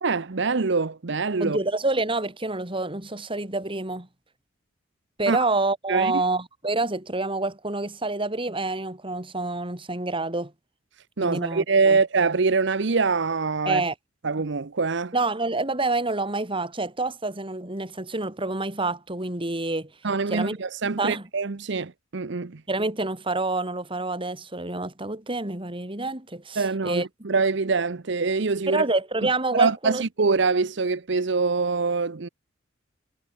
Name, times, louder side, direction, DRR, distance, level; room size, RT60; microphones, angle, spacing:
voice 1, 0.0-1.6 5.3-5.4 5.9-6.2 11.2-13.8 14.2-15.1 20.0-22.6 26.6-28.9 29.5-32.3, right 4 dB, 70° right, 0.8 m, -24 dB
voice 2, 1.4-4.1 5.2-10.5 11.2-12.0 13.7-13.9 15.1-19.9 20.3-20.5 21.0-21.2 22.7-27.0 28.7-30.0, right 2 dB, 30° right, 4.0 m, -27 dB
head